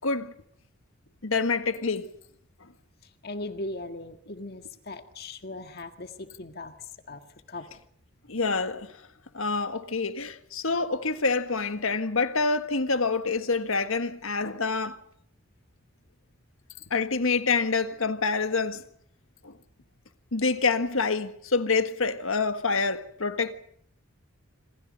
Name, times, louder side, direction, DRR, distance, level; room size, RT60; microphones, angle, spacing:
voice 1, 0.0-0.3 1.2-2.1 8.3-8.9 9.3-15.0 16.9-18.8 19.4-19.5 20.3-23.5, left 4 dB, 75° left, 1.6 m, -27 dB
voice 2, 3.2-6.7 7.1-7.2 7.5-7.7, left 2 dB, 45° left, 1.7 m, -38 dB
27.0 x 27.0 x 5.3 m
head